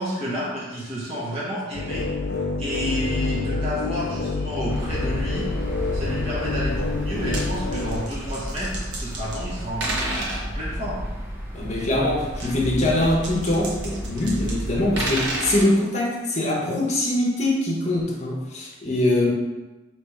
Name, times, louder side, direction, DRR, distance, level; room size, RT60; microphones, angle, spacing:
voice 1, 0.0-2.1 2.6-5.5 5.9-11.0, equal, 30° right, -7 dB, 1.0 m, -30 dB
sound 1, 1.7-8.0, left 3 dB, 55° left, 0.4 m, -27 dB
sound 2, 4.7-15.6, equal, 10° right, 0.6 m, -32 dB
sound 3, 7.0-7.4 7.7-9.5 9.8-10.4 12.3-14.5 14.8-15.7 17.4-17.5 18.0-18.1, right 2 dB, 60° right, 0.9 m, -30 dB
voice 2, 11.5-19.3, left 1 dB, 35° left, -3 dB, 0.9 m, -23 dB
3.4 x 3.1 x 4.6 m, 1.1 s
head